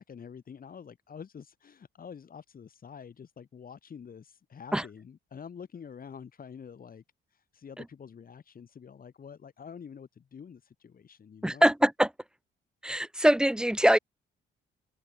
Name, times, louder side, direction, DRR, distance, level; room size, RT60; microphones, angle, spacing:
voice 1, 0.0-7.0 7.3-11.7, left 7 dB, 45° left, 3.5 m, -47 dB
voice 2, 11.4-12.1 12.8-14.0, right 1 dB, 5° right, 0.7 m, -23 dB
open air
cardioid pair, 90°, 20 cm